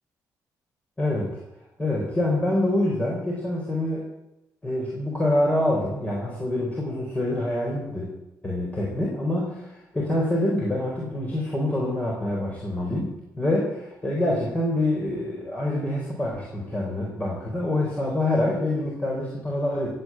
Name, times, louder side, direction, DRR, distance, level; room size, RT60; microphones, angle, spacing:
voice 1, 1.0-1.4 1.8-4.0 4.6-8.1 8.4-19.9, left 1 dB, 20° left, -3 dB, 4.5 m, -26 dB
14.5 x 8.5 x 9.0 m, 0.92 s
cardioid pair, 85°, 7 cm